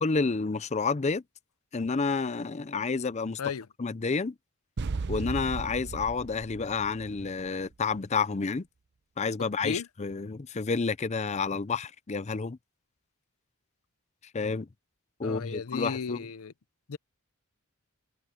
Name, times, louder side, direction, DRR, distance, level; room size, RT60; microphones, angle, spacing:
voice 1, 0.0-1.2 1.7-3.4 3.8-4.3 5.1-8.7 9.2-12.6 14.3-14.7 15.2-16.2, left 4 dB, 30° left, 0.5 m, -30 dB
sound 1, 4.8-7.7, right 4 dB, 50° right, 0.5 m, -36 dB
voice 2, 15.2-16.5 16.9-17.0, left 6 dB, 80° left, 0.6 m, -34 dB
head